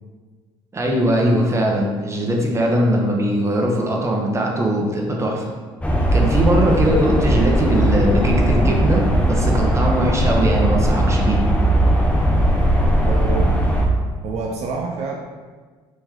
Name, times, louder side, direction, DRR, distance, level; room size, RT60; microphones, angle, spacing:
voice 1, 0.7-5.4 6.1-11.4, right 1 dB, 20° right, -1 dB, 0.9 m, -20 dB
sound 1, 5.8-13.9, right 1 dB, 10° left, 0.7 m, -18 dB
voice 2, 13.0-13.7 14.2-15.2, right 4 dB, 60° right, 0 dB, 0.5 m, -27 dB
3.2 x 3.0 x 3.7 m, 1.4 s
hypercardioid pair, 65°, 13 cm